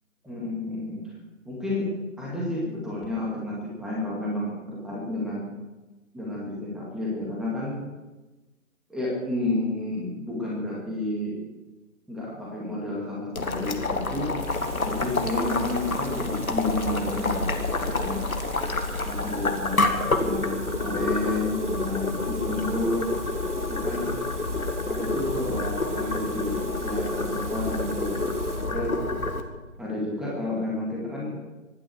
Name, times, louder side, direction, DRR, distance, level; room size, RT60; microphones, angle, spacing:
voice 1, 0.2-1.0 1.5-5.5 6.1-7.8 8.9-11.4 12.1-14.4 14.8-18.3 18.9-23.1 23.6-24.1 24.9-28.2 28.7-28.9 29.8-31.4, left 2 dB, ahead, -5 dB, 2.2 m, -31 dB
Boiling, 13.3-29.4, left 2 dB, 75° left, 2.1 m, -28 dB
Water tap faucet, 14.4-28.9 29.7-29.9, right 5 dB, 55° right, 1.6 m, -46 dB
25.0 x 11.0 x 4.7 m, 1.1 s
figure-of-eight pair, 145°, 42 cm